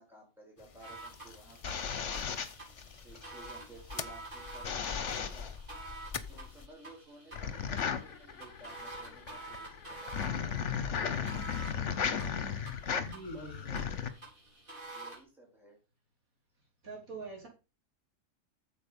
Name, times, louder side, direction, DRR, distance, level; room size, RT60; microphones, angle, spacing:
voice 1, 0.0-2.3 3.0-5.5 6.3-12.5 13.3-14.1 14.9-15.8, right 1 dB, ahead, -1 dB, 4.8 m, -55 dB
sound 1, 0.6-6.7, left 5 dB, 35° left, 0.5 m, -46 dB
sound 2, 0.8-15.2, right 2 dB, 35° right, 4.9 m, -49 dB
sound 3, 1.1-3.2 4.6-5.6 7.3-14.1, left 7 dB, 60° left, 1.4 m, -35 dB
voice 2, 13.0-13.6 16.8-17.5, right 2 dB, 85° right, -1 dB, 4.2 m, -43 dB
9.0 x 7.3 x 5.4 m, 0.31 s
omnidirectional pair, 1.4 m